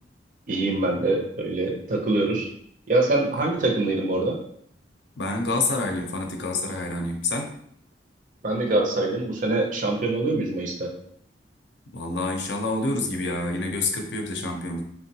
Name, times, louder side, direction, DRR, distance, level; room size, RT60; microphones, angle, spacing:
voice 1, 0.5-2.5 2.9-4.4 8.4-10.9, right 2 dB, 45° right, 1 dB, 0.5 m, -24 dB
voice 2, 5.2-7.6 11.9-14.8, left 2 dB, 70° left, 3 dB, 0.5 m, -27 dB
3.6 x 2.1 x 2.7 m, 0.65 s
head